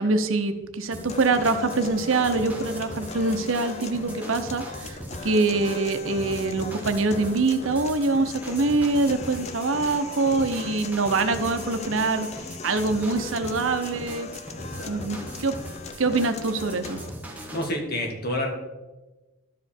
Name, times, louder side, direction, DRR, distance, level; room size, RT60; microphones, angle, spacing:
voice 1, 0.0-5.0 5.2-12.3 12.6-14.3 14.9-15.5 16.0-17.0, right 3 dB, 75° right, 8 dB, 0.7 m, -24 dB
sound 1, 0.9-17.7, right 1 dB, 10° right, 1.0 m, -40 dB
sound 2, 1.1-17.1, left 4 dB, 35° left, 0.5 m, -39 dB
voice 2, 14.6-15.1 17.3-18.5, left 1 dB, 50° left, 1 dB, 1.7 m, -30 dB
12.0 x 5.0 x 4.4 m, 1.1 s
head